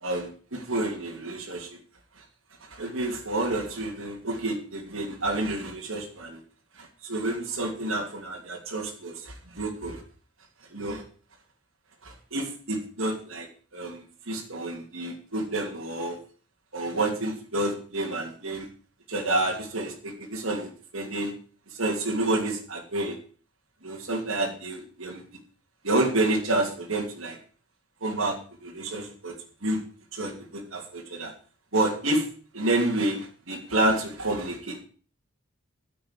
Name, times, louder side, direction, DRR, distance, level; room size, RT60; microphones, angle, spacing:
voice 1, 0.0-1.7 2.7-6.4 7.0-10.0 10.7-11.0 12.0-13.5 13.7-16.2 16.7-18.7 19.1-20.7 20.9-21.3 21.8-23.2 23.8-25.2 25.8-27.4 28.0-28.4 28.6-29.3 29.6-29.8 30.1-31.3 31.7-32.2 32.5-34.8, right 2 dB, 70° right, -1 dB, 3.0 m, -29 dB
10.0 x 7.6 x 8.5 m, 0.41 s
head